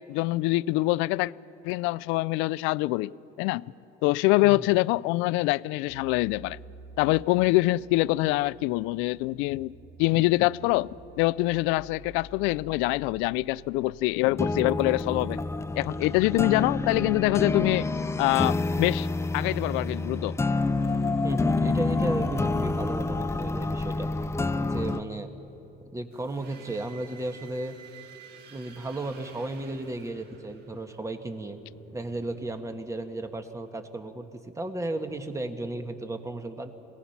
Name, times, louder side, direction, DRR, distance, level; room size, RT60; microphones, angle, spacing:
voice 1, 0.1-1.3 1.6-3.6 4.0-6.6 7.0-9.7 10.0-15.4 15.8-17.9 18.2-19.1 19.3-20.4, left 20 dB, 80° left, 0.4 m, -25 dB
voice 2, 4.4-4.7 21.2-24.1 24.6-25.3 25.9-27.8 28.5-31.6 31.9-36.7, right 2 dB, 15° right, 1.7 m, -34 dB
sound 1, 5.9-15.5, right 2 dB, 90° right, 2.4 m, -50 dB
sound 2, 14.3-25.0, left 3 dB, 15° left, 0.7 m, -28 dB
sound 3, 20.8-24.1 26.1-33.4, right 5 dB, 55° right, 2.2 m, -51 dB
26.0 x 18.0 x 5.9 m
supercardioid pair, 95°, 20 cm